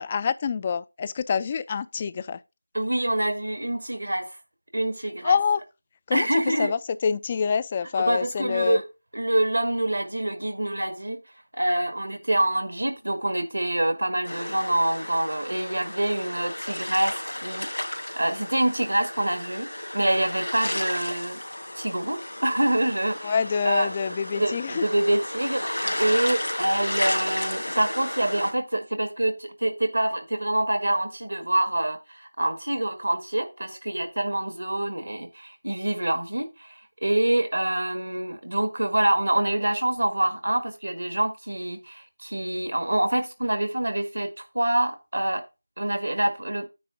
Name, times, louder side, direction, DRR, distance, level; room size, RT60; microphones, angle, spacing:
voice 1, 0.0-2.4 5.2-5.6 6.1-8.8 23.2-24.8, left 6 dB, 25° left, 0.4 m, -26 dB
voice 2, 2.7-4.4 4.7-5.4 6.1-6.7 8.0-8.8 9.1-11.2 11.5-21.4 21.7-23.3 23.6-23.9 24.4-25.7 26.0-45.4 45.8-46.7, right 1 dB, 75° right, 1.8 m, -26 dB
sound 1, 14.2-28.5, left 1 dB, 75° left, 2.5 m, -33 dB
9.4 x 3.4 x 6.2 m
figure-of-eight pair, 165°, 0 cm